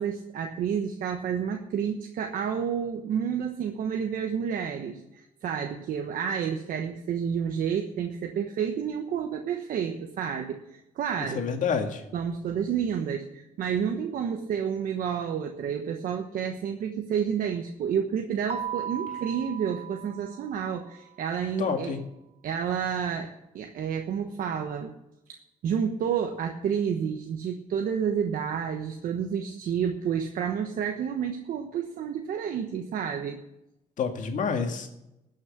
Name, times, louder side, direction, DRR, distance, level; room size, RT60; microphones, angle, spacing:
voice 1, 0.0-11.4 12.1-22.0 22.4-24.9 25.3-33.4, right 7 dB, 70° right, 4 dB, 1.2 m, -30 dB
voice 2, 11.3-12.0 21.6-22.0 34.0-34.9, left 6 dB, 60° left, 5 dB, 2.0 m, -28 dB
Keyboard (musical), 18.5-21.1, right 8 dB, 40° right, 1.2 m, -37 dB
13.0 x 6.5 x 10.0 m, 0.89 s
cardioid pair, 110°, 15 cm